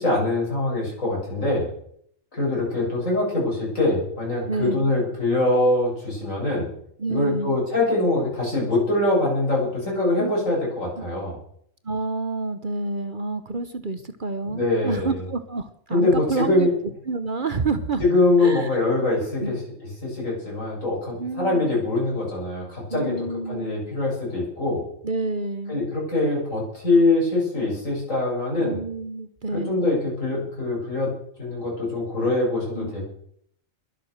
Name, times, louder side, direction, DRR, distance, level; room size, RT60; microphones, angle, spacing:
voice 1, 0.0-1.7 2.3-6.7 7.1-11.4 14.5-15.2 15.9-16.7 18.0-24.8 25.7-28.8 29.5-31.1 31.4-33.0, left 2 dB, 80° left, -3 dB, 8.1 m, -23 dB
voice 2, 4.5-4.9 7.0-7.6 10.2-10.3 11.0-11.1 11.8-16.7 17.0-18.0 18.4-18.8 19.4-19.6 21.2-21.7 22.9-23.8 25.0-25.9 28.6-29.8 32.7-32.9, right 3 dB, 40° right, 11 dB, 1.1 m, -29 dB
21.5 x 8.2 x 6.6 m, 0.68 s
omnidirectional pair, 1.4 m